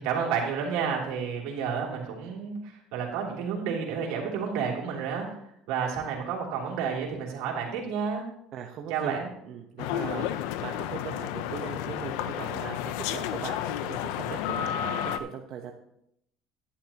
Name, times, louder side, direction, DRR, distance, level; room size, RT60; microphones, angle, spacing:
voice 1, 0.0-5.3 5.7-8.2 8.9-9.3, right 6 dB, 80° right, -1 dB, 3.1 m, -30 dB
voice 2, 8.5-15.7, right 7 dB, 55° right, 2 dB, 1.0 m, -39 dB
sound 1, 9.8-15.2, left 10 dB, 85° left, 0.6 m, -31 dB
11.5 x 11.0 x 2.9 m, 0.76 s
cardioid pair, 130°, 0 cm